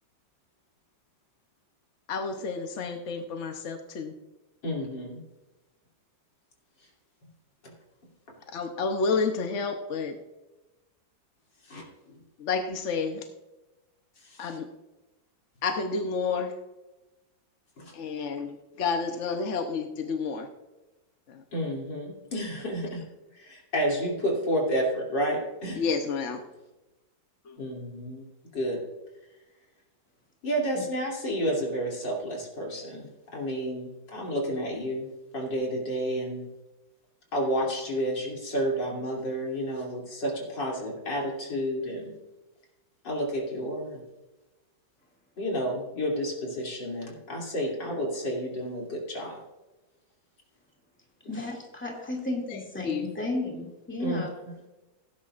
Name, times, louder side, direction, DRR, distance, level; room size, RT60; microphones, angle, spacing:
voice 1, 2.1-4.1 8.5-10.2 12.4-13.2 14.4-14.6 15.6-16.5 17.9-20.5 25.8-26.4 52.8-53.1, left 4 dB, 55° left, 5 dB, 0.9 m, -30 dB
voice 2, 4.6-5.2 7.6-7.7 11.6-12.2 14.2-14.6 17.8-17.9 21.5-23.0 23.3-25.8 27.6-28.2 28.5-28.8 30.4-35.1 35.3-36.5 37.3-42.1 43.0-44.0 45.4-49.4 54.0-54.7, equal, 70° left, -2 dB, 3.5 m, -31 dB
voice 3, 51.3-54.3, left 2 dB, 5° left, -1 dB, 2.3 m, -33 dB
17.0 x 10.0 x 2.5 m, 1.1 s
omnidirectional pair, 2.0 m